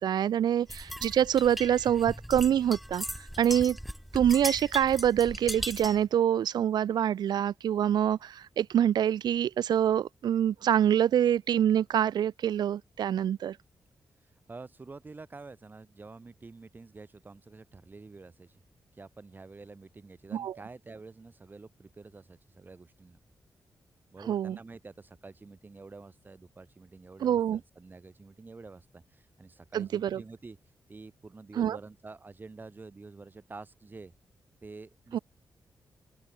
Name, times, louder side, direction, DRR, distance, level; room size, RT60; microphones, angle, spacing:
voice 1, 0.0-3.0 3.4-3.8 4.1-13.6 20.3-20.5 24.3-24.6 27.2-27.6 29.7-30.2 31.6-31.8 35.1-35.2, right 10 dB, 85° right, 0.6 m, -25 dB
sound 1, 0.7-6.1, equal, ahead, 0.5 m, -38 dB
voice 2, 14.2-18.6 18.9-23.2 24.1-30.6 30.9-34.1 34.6-35.2, right 3 dB, 25° right, 2.4 m, -48 dB
open air
wide cardioid pair, 135°, 7 cm